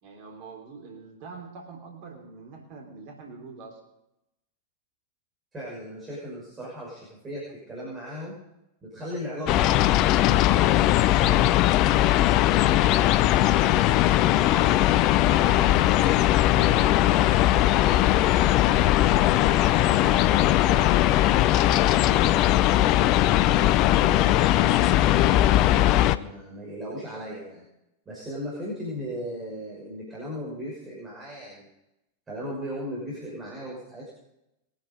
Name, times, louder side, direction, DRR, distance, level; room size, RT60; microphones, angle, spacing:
voice 1, 0.0-3.8 12.6-15.9 16.5-17.3 18.1-19.7 20.0-22.3, right 5 dB, 45° right, 2 dB, 3.3 m, -44 dB
voice 2, 5.5-8.4 8.8-10.0 24.6-27.6 28.1-31.7 32.3-34.1, equal, 20° right, -5 dB, 6.0 m, -37 dB
sound 1, 9.5-26.2, left 14 dB, 40° left, 0.6 m, -20 dB
22.0 x 9.4 x 5.3 m, 0.89 s
figure-of-eight pair, 90°, 0 cm